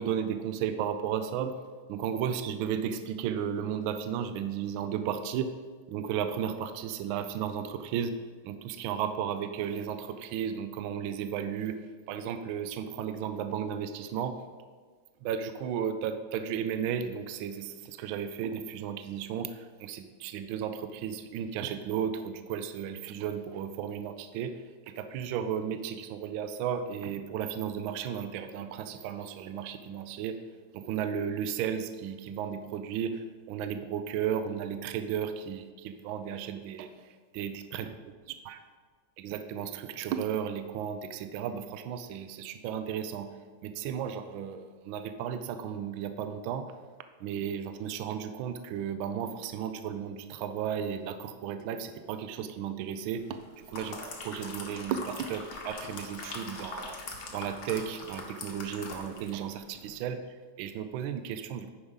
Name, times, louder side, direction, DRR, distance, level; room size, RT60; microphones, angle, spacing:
voice 1, 0.0-1.5 1.9-5.5 5.9-8.2 8.4-14.4 15.2-24.6 25.0-30.4 30.7-36.9 37.3-37.9 38.5-38.6 39.2-43.3 43.6-46.7 47.2-54.0 54.2-57.0 57.3-60.2 60.6-61.7, right 8 dB, 75° right, 9 dB, 1.3 m, -34 dB
sound 1, 53.4-59.4 59.8-59.9, left 3 dB, 55° left, 1.7 m, -42 dB
9.7 x 5.0 x 5.5 m, 1.5 s
omnidirectional pair, 2.3 m